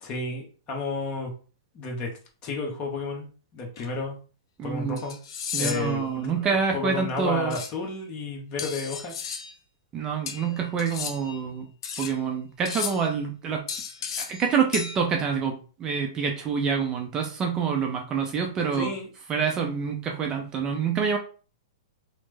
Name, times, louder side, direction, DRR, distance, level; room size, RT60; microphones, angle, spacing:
voice 1, 0.0-1.3 1.7-2.1 2.4-4.2 4.6-5.2 5.6-9.1 18.8-19.1, left 3 dB, 30° left, 1 dB, 1.0 m, -32 dB
sound 1, 3.8-3.9 5.0-6.0 7.5-7.7 8.6-9.5 10.3-11.4 11.8-12.2 12.6-13.1 13.7-14.5 14.7-15.0, left 6 dB, 60° left, 0.6 m, -34 dB
voice 2, 4.6-5.0 5.5-7.6 9.9-11.7 12.0-13.6 14.2-15.5 15.8-18.9 19.3-21.2, right 6 dB, 25° right, 2 dB, 0.5 m, -27 dB
3.1 x 2.1 x 3.2 m, 0.38 s
hypercardioid pair, 135°, 3 cm